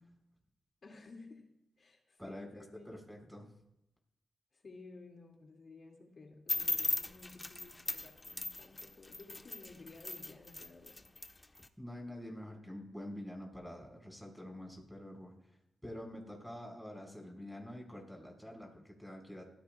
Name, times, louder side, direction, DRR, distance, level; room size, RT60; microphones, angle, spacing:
voice 1, 0.8-3.0 4.5-11.1, left 3 dB, 55° left, 1 dB, 2.3 m, -55 dB
voice 2, 2.2-3.5 11.8-15.6 15.8-19.5, left 1 dB, ahead, 1 dB, 4.9 m, -47 dB
sound 1, 6.5-11.7, left 2 dB, 25° left, 1.1 m, -38 dB
21.0 x 15.0 x 2.4 m, 0.83 s
cardioid pair, 65°, 0 cm